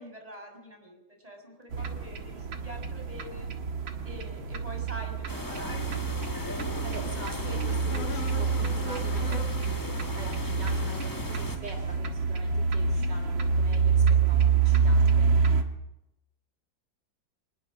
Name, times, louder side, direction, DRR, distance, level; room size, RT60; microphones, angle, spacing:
voice 1, 0.0-3.5 4.0-6.1, left 1 dB, 20° right, 3 dB, 6.3 m, -45 dB
sound 1, 1.7-15.6, right 5 dB, 80° right, 2.4 m, -27 dB
sound 2, 5.3-11.6, left 2 dB, 15° left, 1.0 m, -37 dB
sound 3, 6.8-12.0, left 1 dB, 85° left, 3.6 m, -44 dB
voice 2, 6.8-15.6, right 2 dB, 60° right, 0 dB, 3.0 m, -45 dB
27.0 x 20.0 x 5.1 m, 0.88 s
omnidirectional pair, 2.1 m